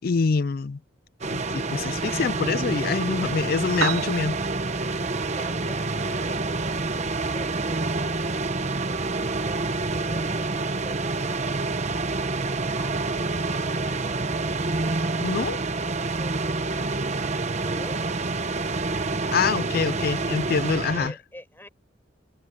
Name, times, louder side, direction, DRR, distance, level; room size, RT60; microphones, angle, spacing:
voice 1, 0.0-0.8 1.3-4.4 15.2-15.6 19.3-21.1, left 5 dB, 50° left, 0.4 m, -25 dB
sound 1, 1.2-21.1, right 3 dB, 35° right, 1.0 m, -27 dB
Piano, 3.6-11.6, right 7 dB, 80° right, 0.8 m, -40 dB
voice 2, 5.0-11.6 12.6-15.1 16.1-17.0 17.3-18.3 20.7-21.7, left 1 dB, 10° left, 6.0 m, -46 dB
head